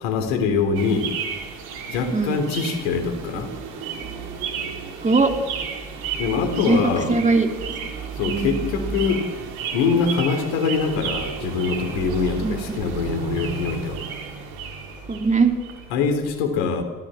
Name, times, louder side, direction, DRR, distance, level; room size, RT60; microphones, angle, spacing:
voice 1, 0.0-1.1 1.9-3.5 6.2-7.1 8.1-9.3 9.7-14.0 15.9-16.8, left 5 dB, 65° left, 8 dB, 3.6 m, -23 dB
sound 1, 0.7-16.0, right 6 dB, 65° right, 4.1 m, -32 dB
voice 2, 7.1-7.5 8.3-8.6 12.4-12.7 15.1-15.5, right 4 dB, 20° right, 5 dB, 2.9 m, -20 dB
28.5 x 15.0 x 7.8 m, 1.4 s
hypercardioid pair, 65°, 39 cm